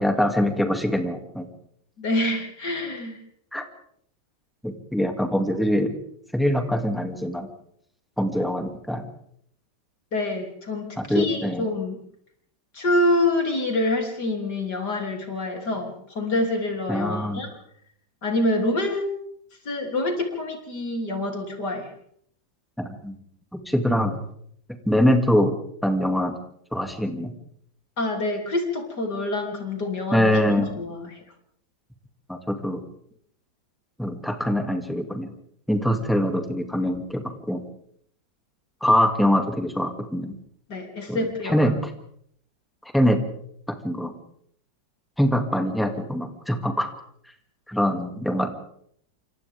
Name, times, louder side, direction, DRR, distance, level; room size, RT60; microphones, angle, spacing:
voice 1, 0.0-1.5 3.5-3.6 4.6-5.9 6.3-7.5 8.2-9.0 11.0-11.6 16.9-17.4 22.8-23.2 23.5-24.2 24.9-25.5 25.8-26.3 26.7-27.3 30.1-30.7 32.3-32.8 34.0-35.3 35.7-37.6 38.8-40.3 41.1-41.7 42.9-43.2 43.7-44.1 45.2-46.9 47.7-48.5, equal, ahead, 4 dB, 2.4 m, -23 dB
voice 2, 2.0-3.2 10.1-12.0 12.7-17.5 18.2-19.1 19.7-21.9 28.0-30.3 30.6-31.2 40.7-41.8, left 2 dB, 60° left, 2 dB, 3.9 m, -26 dB
28.5 x 26.5 x 3.7 m, 0.67 s
omnidirectional pair, 2.0 m